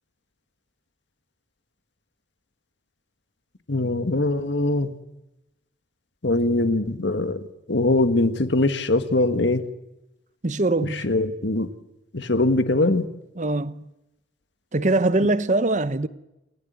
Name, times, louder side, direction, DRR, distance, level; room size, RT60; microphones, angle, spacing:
voice 1, 3.7-4.9 6.2-9.6 10.8-11.7 12.1-13.1, left 2 dB, 70° left, 1.7 m, -22 dB
voice 2, 10.4-11.1 13.4-13.9 14.7-16.1, right 2 dB, 40° right, 1.0 m, -22 dB
28.5 x 15.5 x 9.4 m
head